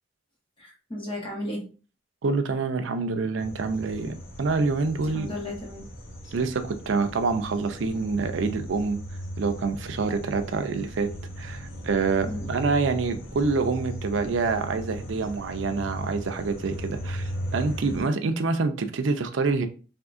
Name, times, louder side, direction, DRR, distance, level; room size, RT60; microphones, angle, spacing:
voice 1, 0.6-1.6 5.1-5.8 12.3-12.4, left 1 dB, 25° left, 1.1 m, -34 dB
voice 2, 2.2-5.3 6.3-9.0 9.4-11.1 11.4-19.7, right 4 dB, 70° right, 0.4 m, -26 dB
sound 1, 3.4-18.0, equal, 70° left, 1.0 m, -37 dB
3.5 x 2.7 x 2.5 m
head